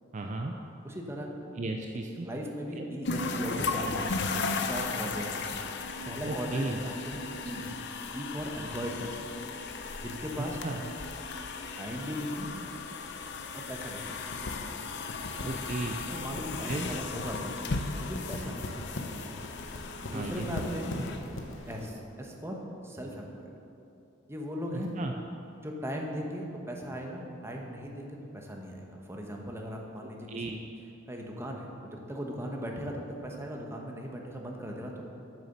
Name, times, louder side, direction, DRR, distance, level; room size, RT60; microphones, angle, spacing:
voice 1, 0.1-0.5 1.6-2.3 2.8-2.9 6.2-6.8 10.4-10.8 15.4-16.0 16.7-16.9 20.1-20.4 24.7-25.1 30.0-30.6, right 2 dB, 40° right, 3 dB, 0.5 m, -35 dB
voice 2, 0.8-1.3 2.2-5.6 6.0-7.6 8.1-9.3 10.0-10.5 11.8-12.5 13.5-14.3 15.4-15.6 16.1-17.5 18.0-18.8 20.0-20.9 21.7-22.6 22.8-23.4 24.3-24.9 25.6-30.6 31.1-35.1, equal, 15° right, 0 dB, 1.1 m, -38 dB
sound 1, 3.1-21.9, left 4 dB, 60° left, 0.6 m, -36 dB
sound 2, 14.2-21.9, left 1 dB, 85° left, 1.0 m, -41 dB
8.3 x 7.0 x 6.6 m, 2.8 s
head